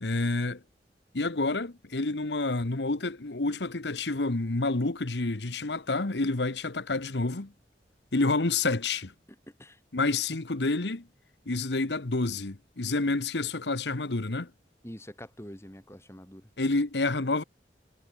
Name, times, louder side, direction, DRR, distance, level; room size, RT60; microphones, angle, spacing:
voice 1, 0.0-0.6 1.1-7.5 8.1-9.1 9.9-11.1 11.5-14.5 16.6-17.4, left 3 dB, 80° left, 1.3 m, -28 dB
voice 2, 9.5-9.8 14.8-16.5, equal, 15° left, 3.9 m, -45 dB
head